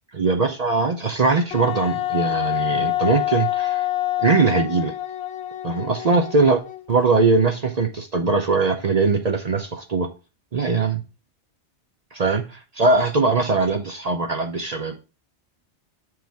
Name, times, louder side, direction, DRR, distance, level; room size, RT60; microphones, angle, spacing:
voice 1, 0.1-3.9 4.2-4.9 5.6-6.6 6.9-10.1 10.5-11.0 12.1-15.0, right 4 dB, 45° right, 6 dB, 0.6 m, -21 dB
Wind instrument woodwind instrument, 1.5-7.0, left 14 dB, 70° left, 0.9 m, -26 dB
7.7 x 4.7 x 3.4 m, 0.32 s
omnidirectional pair, 1.2 m